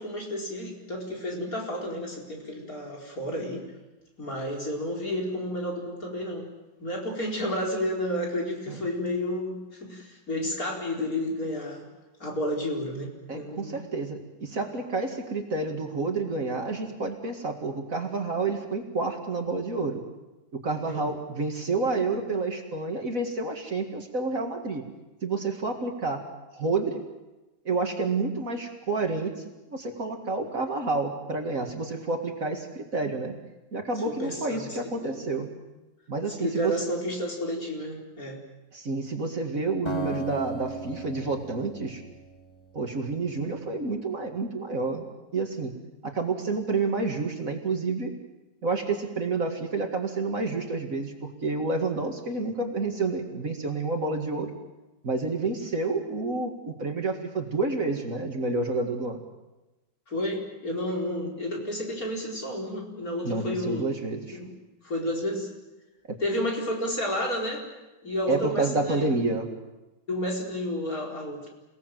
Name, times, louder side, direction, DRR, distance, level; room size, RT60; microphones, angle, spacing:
voice 1, 0.0-3.7 4.2-6.5 6.8-11.9 12.2-13.8 20.9-21.1 34.0-35.5 36.4-38.4 60.1-63.9 64.3-64.5 64.8-65.5 66.2-67.6 68.0-69.1 70.1-71.5, left 1 dB, 50° left, -1 dB, 4.9 m, -31 dB
voice 2, 13.3-20.0 20.5-24.8 25.2-26.2 26.5-27.0 27.6-33.3 33.7-35.5 36.1-36.7 38.7-42.0 42.7-45.0 45.3-45.7 46.0-48.1 48.6-54.5 55.0-59.2 63.2-64.4 66.1-66.2 68.3-69.5, right 3 dB, 50° right, 4 dB, 2.4 m, -29 dB
Acoustic guitar, 39.9-43.0, right 1 dB, 15° left, 3.0 m, -36 dB
28.5 x 18.0 x 7.6 m, 1.1 s
omnidirectional pair, 2.0 m